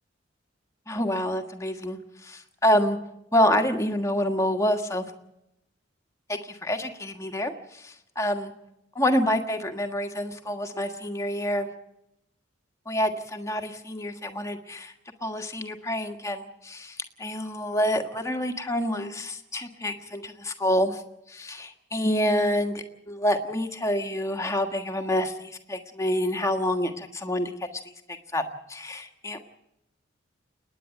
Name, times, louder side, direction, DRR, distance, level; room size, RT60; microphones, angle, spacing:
voice 1, 0.9-3.0 3.3-5.0 6.3-8.5 8.9-11.7 12.9-14.9 15.2-21.0 21.3-27.5 28.1-28.4 28.7-29.4, equal, 15° left, 4 dB, 1.5 m, -27 dB
29.0 x 10.0 x 9.0 m, 0.85 s
head